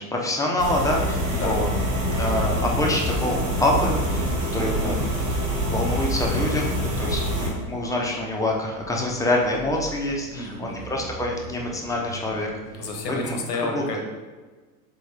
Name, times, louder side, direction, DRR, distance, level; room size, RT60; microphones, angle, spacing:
voice 1, 0.0-1.7 2.1-12.5 13.2-13.4 13.7-13.8, left 1 dB, 5° left, -1 dB, 0.5 m, -26 dB
sound 1, 0.5-13.3, right 3 dB, 50° right, 1.2 m, -40 dB
sound 2, 0.6-7.5, equal, 80° right, 1.5 m, -25 dB
voice 2, 10.3-11.2 12.8-14.0, left 2 dB, 80° left, 3 dB, 0.9 m, -31 dB
3.6 x 3.6 x 3.2 m, 1.3 s
hypercardioid pair, 95°, 47 cm